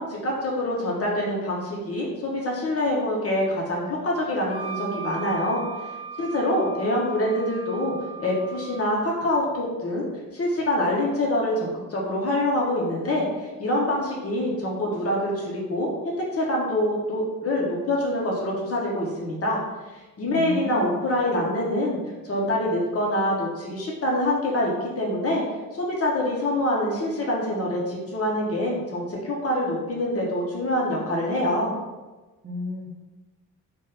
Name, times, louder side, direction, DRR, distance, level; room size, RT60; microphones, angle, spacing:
voice 1, 0.0-5.6 6.2-10.1 10.3-15.9 16.3-19.6 19.9-22.0 22.2-25.4 25.7-31.7, left 1 dB, 30° left, -3 dB, 0.8 m, -25 dB
Wind instrument woodwind instrument, 4.5-9.0, right 5 dB, 65° left, 0.9 m, -37 dB
voice 2, 20.2-21.0 32.4-32.9, left 3 dB, 20° right, -5 dB, 1.0 m, -33 dB
3.4 x 2.1 x 3.7 m, 1.2 s
figure-of-eight pair, 45°, 45 cm